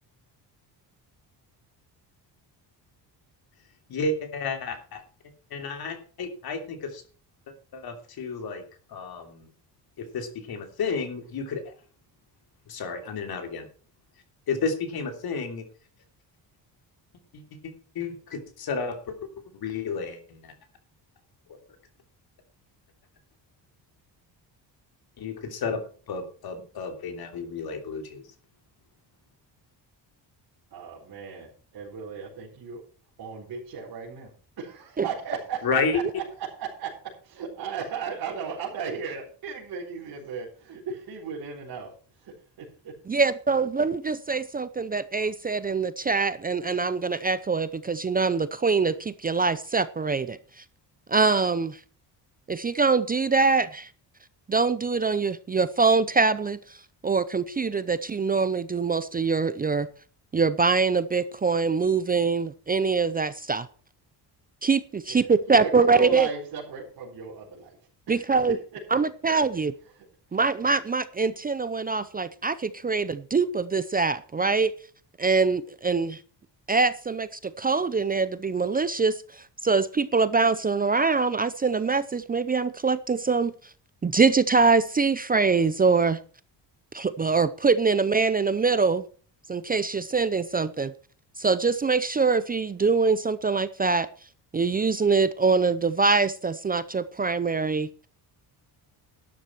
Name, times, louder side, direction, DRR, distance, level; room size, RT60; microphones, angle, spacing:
voice 1, 3.9-5.0 5.5-7.0 7.5-8.6 8.9-9.5 10.0-11.7 12.7-13.7 14.5-15.6 17.3-20.5 25.2-25.8 26.1-28.2 35.6-36.0, left 4 dB, 60° left, 6 dB, 3.2 m, -32 dB
voice 2, 30.7-32.8 33.2-36.9 37.3-42.7 65.1-67.8 68.1-68.8 69.9-70.4, right 6 dB, 60° right, -5 dB, 4.4 m, -36 dB
voice 3, 43.1-50.4 51.1-51.8 52.5-53.9 54.5-56.6 57.0-59.9 60.3-63.7 64.6-66.3 68.1-68.6 68.9-69.7 70.3-74.7 75.2-76.2 76.7-79.1 79.6-83.5 84.0-86.2 86.9-89.0 89.5-90.9 91.4-94.1 94.5-97.9, right 4 dB, 20° right, 14 dB, 0.6 m, -24 dB
12.5 x 10.5 x 4.5 m, 0.41 s
cardioid pair, 150°, 41 cm